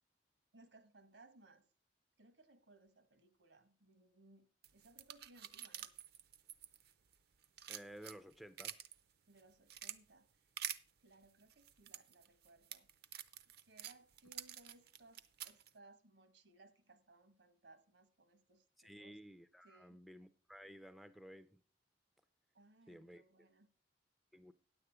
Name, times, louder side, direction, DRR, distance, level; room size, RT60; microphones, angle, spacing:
voice 1, 0.5-1.7 2.2-4.5 4.7-5.9 9.3-10.5 11.0-12.9 13.7-19.2 19.6-20.0 22.5-23.7, right 2 dB, 80° right, 1.3 m, -65 dB
sound 1, 4.6-7.1 7.4-9.0 9.4-10.0 10.6-10.8 11.5-15.7, right 10 dB, 60° right, 0.6 m, -48 dB
voice 2, 7.7-8.8 18.8-21.6 22.9-23.2 24.3-24.5, equal, ahead, 0.4 m, -55 dB
9.8 x 7.8 x 4.9 m
head